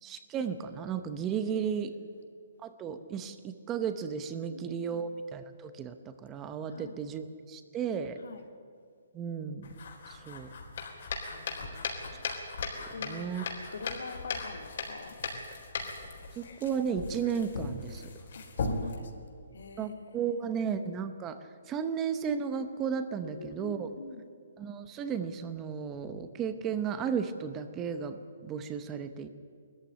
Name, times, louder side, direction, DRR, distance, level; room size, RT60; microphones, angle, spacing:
voice 1, 0.0-1.9 2.6-8.2 9.1-9.7 10.1-10.5 13.0-13.5 16.4-18.1 19.8-21.4 21.7-23.9 24.6-29.3, right 7 dB, 15° right, 10 dB, 0.8 m, -34 dB
voice 2, 1.4-2.2 4.5-5.1 6.7-7.0 8.2-8.4 11.3-12.0 12.9-13.3 13.7-15.2 18.3-19.9 20.2-20.4 23.2-24.3, left 4 dB, 80° left, 5 dB, 2.6 m, -45 dB
sound 1, 9.6-19.0, left 4 dB, 60° left, 3.8 m, -38 dB
19.0 x 14.5 x 9.8 m, 2.1 s
hypercardioid pair, 165°, 0 cm